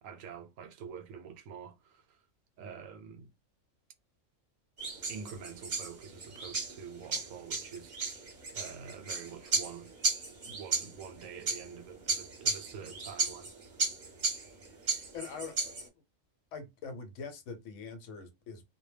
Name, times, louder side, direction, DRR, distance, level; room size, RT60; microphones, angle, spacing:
voice 1, 0.0-2.2 2.6-3.3 5.1-9.9 10.4-13.5, right 6 dB, 80° right, 0.9 m, -46 dB
sound 1, 4.8-15.9, right 4 dB, 45° right, 0.8 m, -35 dB
voice 2, 15.1-15.8 16.5-18.6, left 5 dB, 75° left, 0.9 m, -43 dB
2.1 x 2.1 x 3.2 m
omnidirectional pair, 1.4 m